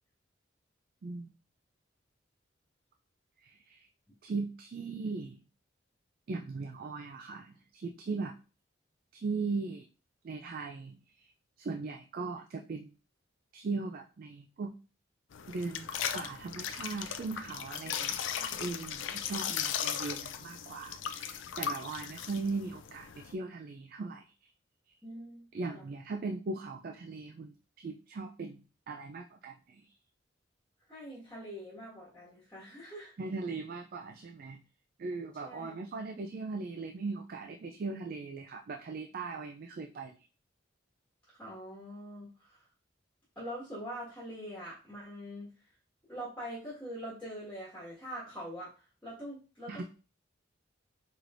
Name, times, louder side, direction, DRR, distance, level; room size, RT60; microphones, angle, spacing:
voice 1, 1.0-1.3 3.4-3.9 4.2-5.4 6.3-8.3 9.1-9.9 10.2-11.3 11.6-12.9 13.5-14.7 15.5-18.2 18.6-24.2 25.5-28.6 28.9-29.9 33.2-34.6 35.0-40.2 49.7-49.8, right 3 dB, 50° right, 4 dB, 0.3 m, -39 dB
sound 1, 15.3-23.3, left 8 dB, 80° left, 0.4 m, -37 dB
voice 2, 25.0-25.9 30.9-33.1 35.4-35.7 41.3-42.6 43.3-45.5 46.1-49.8, equal, 10° left, -7 dB, 1.5 m, -44 dB
4.7 x 3.1 x 2.5 m, 0.34 s
head